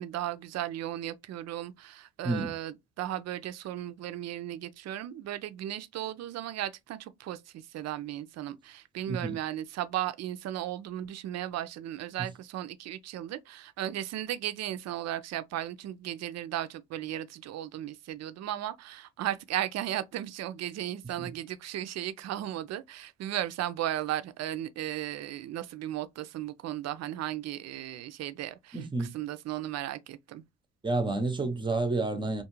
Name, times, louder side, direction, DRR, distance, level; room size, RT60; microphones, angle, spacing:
voice 1, 0.0-28.8 29.1-30.4, right 12 dB, 60° right, 0.4 m, -35 dB
voice 2, 9.1-9.4 12.2-12.3 21.2-21.3 28.7-29.1 30.8-32.4, right 2 dB, 15° right, 0.6 m, -30 dB
2.5 x 2.4 x 3.0 m
cardioid pair, 90°, 30 cm